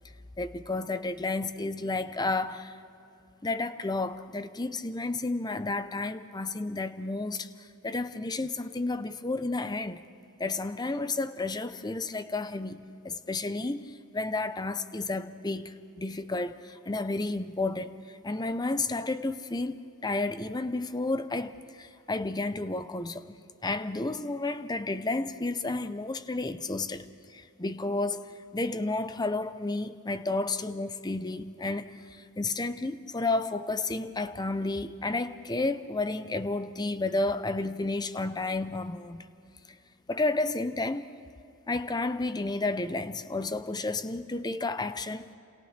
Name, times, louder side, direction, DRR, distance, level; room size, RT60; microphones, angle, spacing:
voice 1, 0.4-2.7 3.4-7.5 7.8-10.0 10.4-17.9 18.2-21.5 21.8-23.2 23.6-27.0 27.3-28.2 28.5-31.8 32.4-39.2 40.1-41.0 41.7-45.3, left 2 dB, 20° left, 0.7 m, -31 dB
30.0 x 28.0 x 3.3 m
head